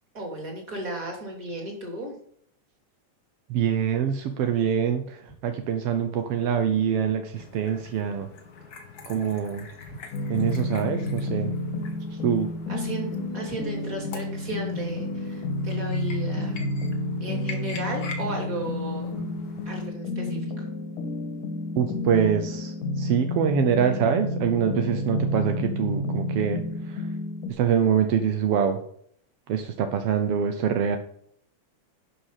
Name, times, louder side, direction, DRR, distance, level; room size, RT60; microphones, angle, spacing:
voice 1, 0.1-2.1 12.7-16.6 17.2-19.2 19.6-20.7, right 1 dB, 25° right, 1 dB, 3.2 m, -35 dB
voice 2, 3.5-8.3 9.0-9.7 10.3-11.5 12.1-12.5 21.8-27.1 27.5-28.8 29.5-31.0, right 8 dB, 75° right, 7 dB, 1.4 m, -25 dB
sound 1, 7.3-19.9, left 4 dB, 60° left, 1.0 m, -44 dB
sound 2, 10.1-27.5, left 2 dB, 80° left, 2.9 m, -30 dB
11.5 x 5.8 x 5.8 m, 0.65 s
omnidirectional pair, 3.6 m